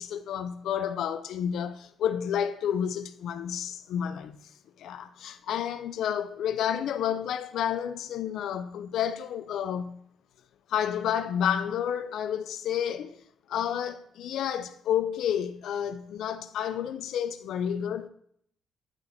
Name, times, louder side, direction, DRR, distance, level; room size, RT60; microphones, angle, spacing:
voice 1, 0.0-4.4 4.8-10.0 10.7-13.2 13.5-18.1, left 9 dB, 75° left, 0.3 m, -30 dB
9.6 x 3.5 x 3.4 m
cardioid pair, 90°, 0 cm